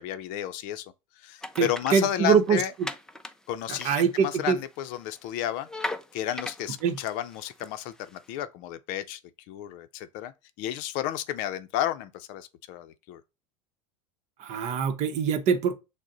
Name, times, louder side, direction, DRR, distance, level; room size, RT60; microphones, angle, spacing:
voice 1, 0.0-2.7 3.5-5.7 6.1-9.2 9.5-10.3 10.6-13.2, left 12 dB, 60° left, 0.5 m, -32 dB
sound 1, 1.4-3.3 3.7-4.6 4.9-8.2, left 2 dB, 5° left, 0.4 m, -38 dB
voice 2, 1.6-2.9 3.8-4.6 6.8-7.0 14.4-15.7, right 7 dB, 45° right, 0.8 m, -24 dB
6.3 x 2.1 x 3.8 m
supercardioid pair, 115°, 16 cm